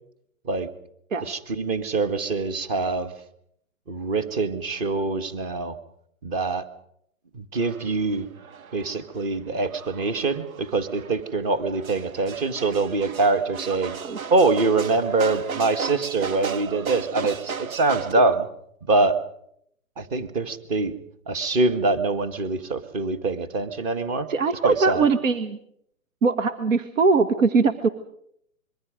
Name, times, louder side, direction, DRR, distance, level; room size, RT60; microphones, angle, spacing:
voice 1, 1.2-3.1 3.9-5.8 6.2-6.7 7.3-8.3 8.7-14.0 14.3-18.5 18.9-19.2 20.0-20.9 21.3-24.3 24.6-25.1, right 3 dB, 30° right, 11 dB, 1.9 m, -24 dB
sound 1, 7.5-18.1, right 6 dB, 85° right, 1.1 m, -36 dB
voice 2, 24.3-25.6 26.2-27.9, right 4 dB, 65° right, 9 dB, 1.7 m, -21 dB
26.0 x 23.0 x 5.2 m, 0.71 s
hypercardioid pair, 150°, 41 cm